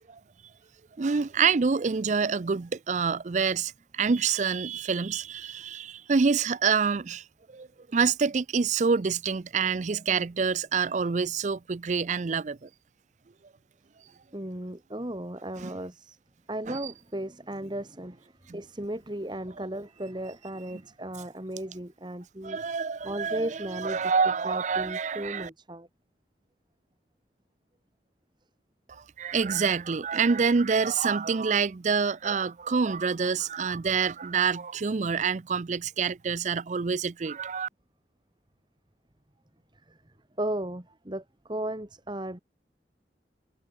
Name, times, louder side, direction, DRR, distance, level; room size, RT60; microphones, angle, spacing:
voice 1, 1.0-12.7 15.6-15.7 16.7-16.9 18.5-18.6 22.4-25.5 28.9-37.7, right 5 dB, 40° right, 0.5 m, -27 dB
voice 2, 14.3-16.2 16.5-22.6 23.0-24.1 24.4-25.9 39.9-40.0 40.4-42.4, right 1 dB, 25° right, 1.9 m, -35 dB
head